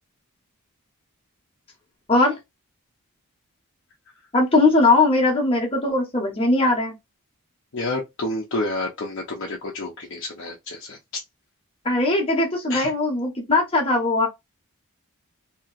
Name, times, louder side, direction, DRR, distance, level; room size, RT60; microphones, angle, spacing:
voice 1, 4.3-6.9 11.8-14.3, left 2 dB, 25° left, 1.1 m, -19 dB
voice 2, 7.7-11.2 12.7-12.9, left 2 dB, 60° left, 0.7 m, -29 dB
2.9 x 2.9 x 2.4 m
head